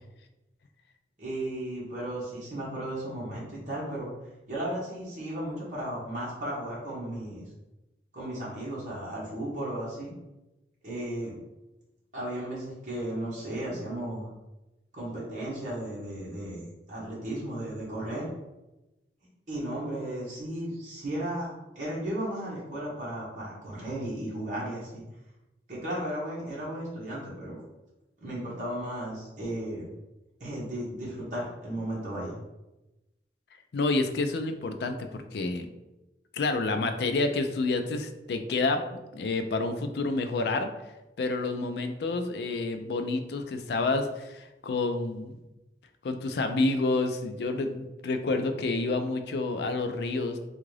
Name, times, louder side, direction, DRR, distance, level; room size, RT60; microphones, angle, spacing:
voice 1, 1.2-4.1 4.5-7.5 8.1-10.1 10.8-11.4 12.1-14.3 14.9-18.3 19.5-25.0 25.7-27.6 28.2-29.9 30.4-32.4, right 1 dB, 45° right, -7 dB, 1.0 m, -35 dB
voice 2, 33.7-35.7 36.3-38.8 39.1-40.7 41.2-45.4 46.0-50.4, left 3 dB, 65° left, 7 dB, 0.4 m, -29 dB
3.6 x 2.4 x 3.2 m, 1.0 s
head